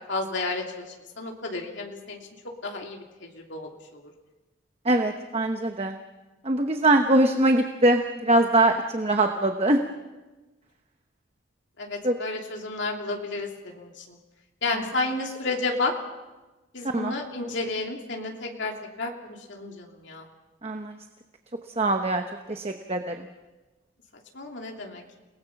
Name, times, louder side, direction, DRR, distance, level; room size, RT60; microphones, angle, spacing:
voice 1, 0.1-0.9 1.2-2.2 2.6-4.1 11.8-14.2 14.6-15.9 16.7-18.7 19.0-20.3 24.3-25.0, left 3 dB, 60° left, 1 dB, 3.0 m, -31 dB
voice 2, 4.8-6.0 6.4-9.8 12.0-12.2 14.7-14.8 16.8-17.1 20.6-21.0 21.8-23.3, right 1 dB, 30° right, 5 dB, 1.0 m, -23 dB
29.5 x 19.0 x 5.9 m, 1.1 s
head